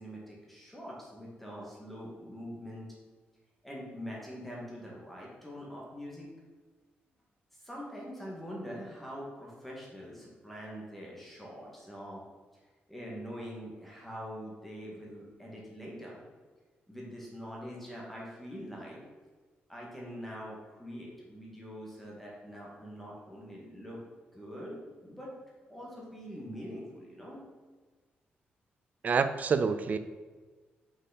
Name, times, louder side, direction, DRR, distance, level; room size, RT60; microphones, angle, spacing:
voice 1, 0.0-2.9 3.6-6.3 7.6-12.2 12.9-16.2 16.9-19.0 19.7-24.0 24.3-25.3 25.7-27.4, equal, 5° left, -4 dB, 1.9 m, -44 dB
voice 2, 29.0-30.0, right 5 dB, 45° right, 10 dB, 0.5 m, -27 dB
6.0 x 5.5 x 4.1 m, 1.4 s
cardioid pair, 115°, 4 cm